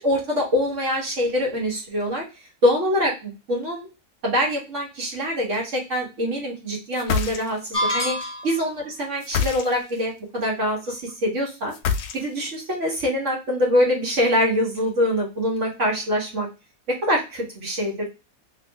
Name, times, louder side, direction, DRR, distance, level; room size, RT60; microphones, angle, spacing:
voice 1, 0.0-2.2 2.6-3.9 4.2-8.1 8.4-11.7 12.1-16.5 16.9-18.1, equal, 55° right, -2 dB, 1.4 m, -24 dB
sound 1, 6.9-7.8 9.2-10.0 11.7-12.6, left 6 dB, 75° left, 1.0 m, -26 dB
sound 2, 7.7-8.7, left 1 dB, 5° left, 1.1 m, -26 dB
3.1 x 2.5 x 3.2 m, 0.29 s
omnidirectional pair, 1.6 m